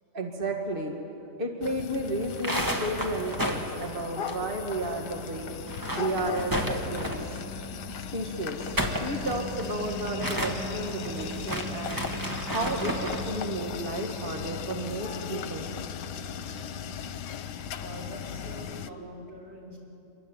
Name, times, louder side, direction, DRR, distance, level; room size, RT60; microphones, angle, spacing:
voice 1, 0.1-5.5 5.9-7.4 8.1-8.6 8.9-12.1 12.5-15.7 19.0-19.1, right 1 dB, 30° right, 2 dB, 2.2 m, -33 dB
sound 1, 1.6-18.9, left 6 dB, 85° left, 1.5 m, -37 dB
sound 2, 2.2-4.9 5.1-5.2 5.6-7.4 8.5-13.3, equal, 10° right, 2.1 m, -32 dB
voice 2, 17.8-19.8, equal, 85° right, -4 dB, 6.5 m, -45 dB
27.0 x 23.0 x 9.1 m, 2.9 s
omnidirectional pair, 1.8 m